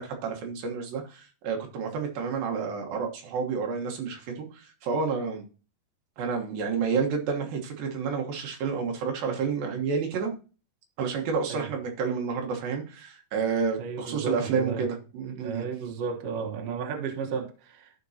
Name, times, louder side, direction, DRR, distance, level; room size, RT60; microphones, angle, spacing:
voice 1, 0.0-5.4 6.2-10.3 11.0-15.6, right 5 dB, 85° right, 3.1 m, -30 dB
voice 2, 13.8-14.9 15.4-17.9, right 6 dB, 55° right, 2.0 m, -33 dB
13.5 x 5.2 x 2.8 m
omnidirectional pair, 4.0 m